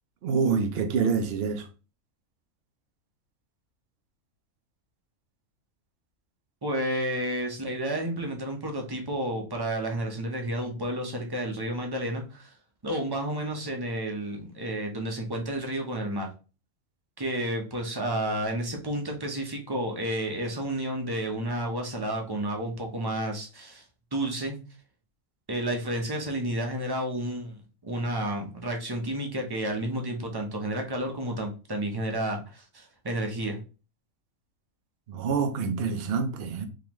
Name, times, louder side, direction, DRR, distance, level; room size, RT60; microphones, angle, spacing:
voice 1, 0.2-1.7 35.1-36.7, right 5 dB, 60° right, 0.7 m, -26 dB
voice 2, 6.6-12.5 12.8-16.3 17.2-23.8 24.1-24.6 25.5-33.6, right 1 dB, 25° right, 0.6 m, -31 dB
3.8 x 2.9 x 3.0 m
omnidirectional pair, 1.4 m